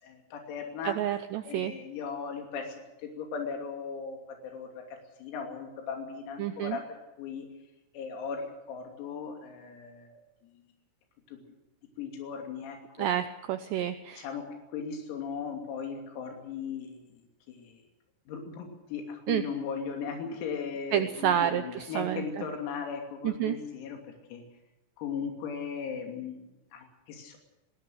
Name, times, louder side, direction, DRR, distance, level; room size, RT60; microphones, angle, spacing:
voice 1, 0.0-1.0 1.5-2.8 3.0-6.8 7.2-7.5 7.9-10.2 11.3-11.4 12.0-13.1 14.2-14.4 14.7-17.1 17.5-17.8 18.3-24.0 24.3-24.4 25.0-26.5 26.7-27.4, left 6 dB, 85° left, 3 dB, 5.6 m, -37 dB
voice 2, 0.8-1.7 6.4-6.8 13.0-14.3 19.3-19.4 20.9-22.4 23.2-23.6, right 11 dB, 80° right, 10 dB, 2.5 m, -29 dB
22.0 x 19.0 x 6.4 m, 0.97 s
omnidirectional pair, 6.0 m